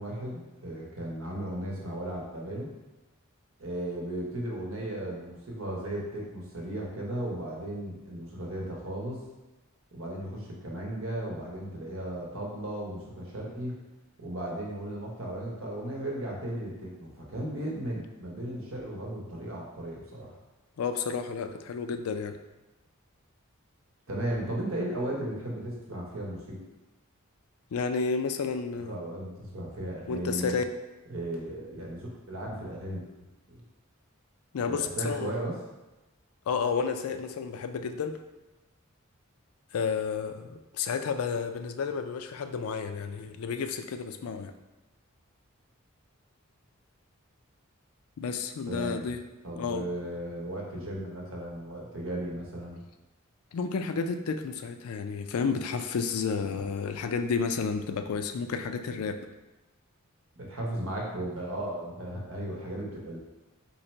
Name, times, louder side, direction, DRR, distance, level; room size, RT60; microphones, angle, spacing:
voice 1, 0.0-2.7 3.6-9.2 9.9-13.8 14.2-20.3 24.1-26.6 28.9-30.6 31.1-33.0 33.5-33.6 34.7-35.5 48.7-49.1 49.4-52.8 60.4-63.2, right 1 dB, 65° right, -2 dB, 1.1 m, -35 dB
voice 2, 20.8-22.4 27.7-29.0 30.1-30.6 34.5-35.3 36.5-38.2 39.7-44.5 48.2-49.2 49.6-49.9 53.5-59.2, left 5 dB, 85° left, 8 dB, 0.4 m, -31 dB
4.0 x 2.9 x 4.4 m, 1.1 s
head